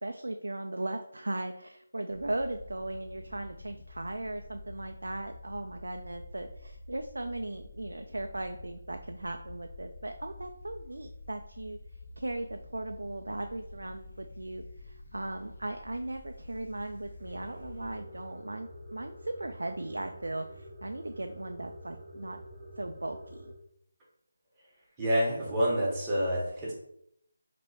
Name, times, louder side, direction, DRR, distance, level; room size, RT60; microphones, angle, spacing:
voice 1, 0.0-11.8 12.2-22.4 22.8-23.5, right 2 dB, 85° right, 5 dB, 0.3 m, -38 dB
sound 1, 2.1-18.0, left 2 dB, 60° left, 1.1 m, -48 dB
sound 2, 17.2-23.5, equal, 30° right, 0.8 m, -48 dB
voice 2, 25.0-26.7, equal, 15° right, -6 dB, 1.3 m, -28 dB
3.0 x 3.0 x 4.2 m, 0.73 s
figure-of-eight pair, 165°, 0 cm